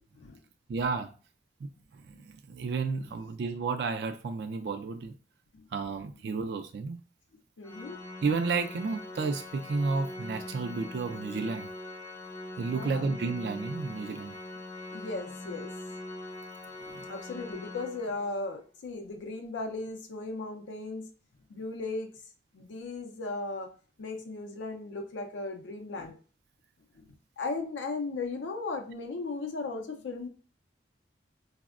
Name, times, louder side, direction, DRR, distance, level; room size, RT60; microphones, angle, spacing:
voice 1, 0.7-1.1 1.6-1.7 2.1-5.1 5.7-7.0 8.2-11.7 12.6-14.4 16.9-17.1, right 4 dB, 65° right, 7 dB, 0.3 m, -32 dB
voice 2, 7.6-8.0 12.7-13.1 14.9-15.7 16.9-21.1 21.5-22.1 22.5-23.7 24.0-26.2 26.9-27.1 27.4-30.3, left 3 dB, 85° left, 3 dB, 0.5 m, -36 dB
Organ, 7.6-18.5, left 2 dB, 15° left, 0.4 m, -42 dB
4.2 x 2.0 x 2.4 m, 0.37 s
head